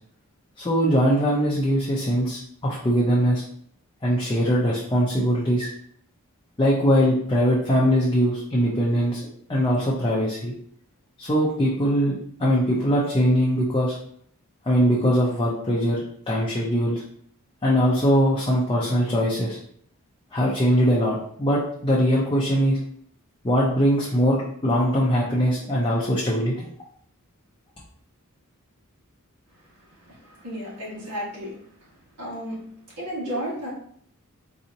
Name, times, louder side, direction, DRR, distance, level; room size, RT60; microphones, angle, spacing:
voice 1, 0.6-3.4 4.0-5.7 6.6-9.2 9.5-10.5 11.2-12.1 12.4-13.9 14.7-17.0 17.6-19.6 20.3-22.8 23.4-26.7, equal, 20° left, -5 dB, 0.5 m, -21 dB
voice 2, 30.0-31.6 32.2-32.6 33.0-33.7, equal, 70° right, -7 dB, 1.5 m, -32 dB
4.0 x 2.8 x 2.6 m, 0.64 s
head